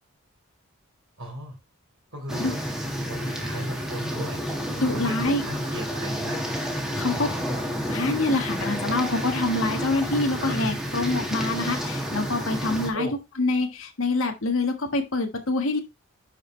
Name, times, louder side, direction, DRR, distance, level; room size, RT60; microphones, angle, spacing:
voice 1, 1.2-1.6 2.1-2.6 3.1-4.4 4.9-6.4 6.9-7.4 10.4-10.7 12.9-13.2, equal, 65° right, -5 dB, 4.1 m, -35 dB
sound 1, 2.3-12.9, equal, ahead, 1.6 m, -30 dB
voice 2, 4.8-5.4 6.9-7.3 7.9-13.1 13.4-15.8, left 2 dB, 70° left, 5 dB, 1.5 m, -26 dB
10.5 x 5.1 x 3.2 m, 0.23 s
head